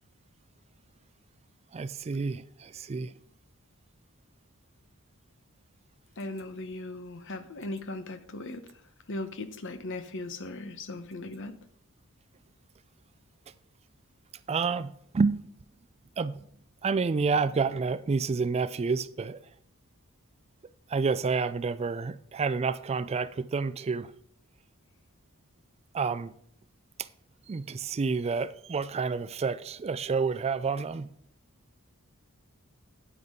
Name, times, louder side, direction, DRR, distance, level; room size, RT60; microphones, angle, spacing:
voice 1, 1.7-3.1 14.5-15.4 16.2-16.5 16.8-19.4 20.9-24.1 25.9-26.3 27.5-31.1, right 4 dB, 30° right, 0.3 m, -29 dB
voice 2, 6.2-8.6 9.1-11.6, left 2 dB, 60° left, 0.9 m, -38 dB
9.4 x 9.3 x 3.7 m
head